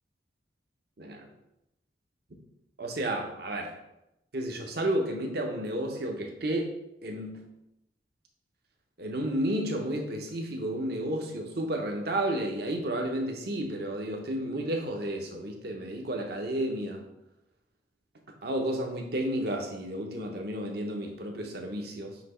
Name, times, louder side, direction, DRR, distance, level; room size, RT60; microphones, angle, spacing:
voice 1, 1.0-1.3 2.8-3.7 4.3-6.7 7.0-7.4 9.0-17.0 18.4-22.2, right 1 dB, 55° right, 2 dB, 0.9 m, -32 dB
5.9 x 2.9 x 5.6 m, 0.88 s
head